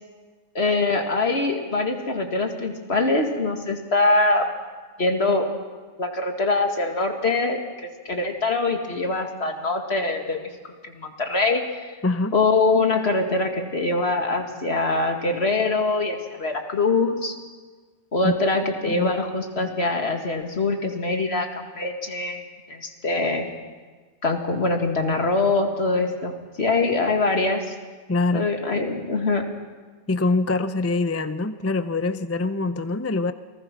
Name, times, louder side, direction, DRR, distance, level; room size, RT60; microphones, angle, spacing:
voice 1, 0.5-4.5 5.0-5.5 6.0-7.6 8.1-10.5 10.9-11.6 12.3-17.4 18.1-22.4 22.7-23.5 24.2-27.7 28.3-29.4, left 3 dB, 55° left, 4 dB, 2.3 m, -23 dB
voice 2, 12.0-12.3 18.2-18.3 19.0-19.1 28.1-28.5 30.1-33.3, left 3 dB, 20° left, 11 dB, 0.4 m, -24 dB
29.0 x 19.5 x 6.1 m, 1.4 s
omnidirectional pair, 1.3 m